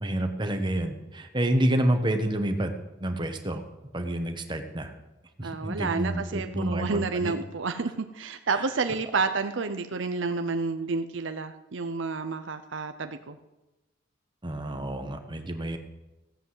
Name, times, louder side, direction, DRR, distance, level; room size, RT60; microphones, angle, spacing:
voice 1, 0.0-2.7 3.0-3.6 3.9-4.9 5.4-7.3 8.5-8.7 14.4-15.8, right 1 dB, 25° right, 5 dB, 1.3 m, -28 dB
voice 2, 5.4-13.4, right 4 dB, 70° right, 8 dB, 0.7 m, -30 dB
15.5 x 8.0 x 7.8 m, 1.0 s
head